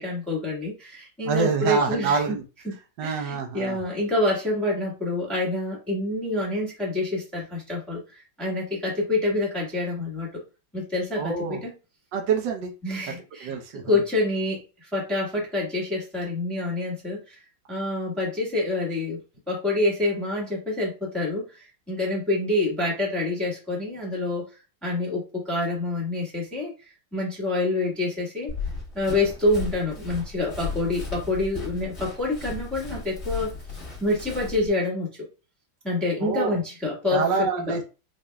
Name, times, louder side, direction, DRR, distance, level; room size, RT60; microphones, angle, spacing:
voice 1, 0.0-2.4 2.6-10.4 10.7-11.7 12.8-13.5 13.8-17.4 17.7-19.2 19.5-24.4 24.8-26.7 27.1-28.5 28.9-33.5 34.0-35.1 35.8-37.8, left 2 dB, ahead, -3 dB, 1.2 m, -27 dB
voice 2, 1.2-2.4 3.0-3.8 11.2-11.6 12.1-12.7 13.4-14.0 36.2-36.6 37.1-37.8, right 5 dB, 65° right, 4 dB, 1.4 m, -26 dB
Run, 28.5-34.7, left 4 dB, 35° left, 1.7 m, -35 dB
5.0 x 2.6 x 2.2 m, 0.31 s
omnidirectional pair, 2.2 m